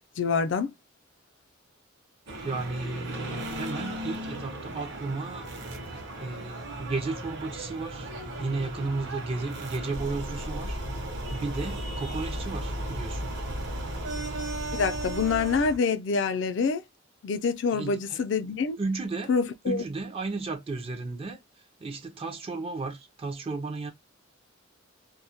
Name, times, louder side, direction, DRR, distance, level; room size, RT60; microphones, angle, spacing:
voice 1, 0.2-0.7 14.7-16.8 17.2-18.8 19.3-19.8, left 5 dB, 65° left, 0.4 m, -26 dB
sound 1, 2.3-15.8, right 1 dB, 60° right, 0.7 m, -35 dB
voice 2, 2.4-5.5 6.2-8.1 8.4-10.8 11.3-13.3 17.7-18.2 18.8-19.3 19.6-21.4 21.8-23.9, right 3 dB, 30° right, 0.4 m, -34 dB
2.2 x 2.1 x 2.6 m
head